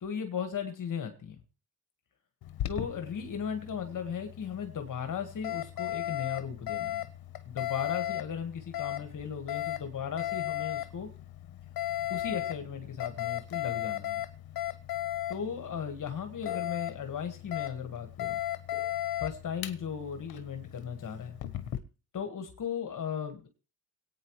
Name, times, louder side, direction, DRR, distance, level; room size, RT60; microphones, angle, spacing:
voice 1, 0.0-1.4 2.7-7.1 7.4-11.1 12.1-14.2 15.3-18.4 19.2-21.4 22.1-23.5, left 7 dB, 55° left, 6 dB, 1.7 m, -36 dB
Alarm, 2.4-21.8, left 13 dB, 75° left, 1.1 m, -36 dB
24.0 x 8.9 x 3.2 m, 0.34 s
cardioid pair, 75°, 36 cm